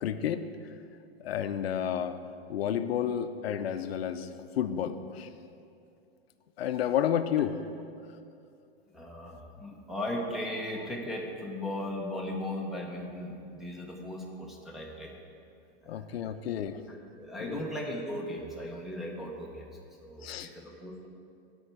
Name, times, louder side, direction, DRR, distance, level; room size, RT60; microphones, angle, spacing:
voice 1, 0.0-0.5 1.2-2.2 2.5-4.3 4.6-5.3 6.6-7.6 15.9-16.8 17.4-17.6 20.2-20.5, left 9 dB, 80° left, 10 dB, 0.6 m, -30 dB
voice 2, 8.9-15.1 15.8-16.4 16.9-19.7 20.0-21.1, left 1 dB, ahead, -2 dB, 0.9 m, -37 dB
13.5 x 4.5 x 4.5 m, 2.5 s
hypercardioid pair, 140°, 30 cm